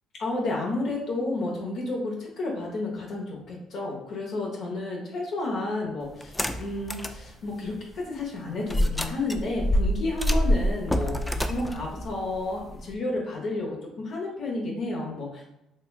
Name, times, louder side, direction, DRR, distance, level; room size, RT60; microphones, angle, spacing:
voice 1, 0.2-15.5, left 2 dB, 60° left, -2 dB, 0.9 m, -31 dB
sound 1, 6.2-7.2 7.7-7.8 8.7-12.9, equal, 10° left, 0.3 m, -26 dB
4.1 x 2.5 x 2.3 m, 0.89 s
supercardioid pair, 70°, 0 cm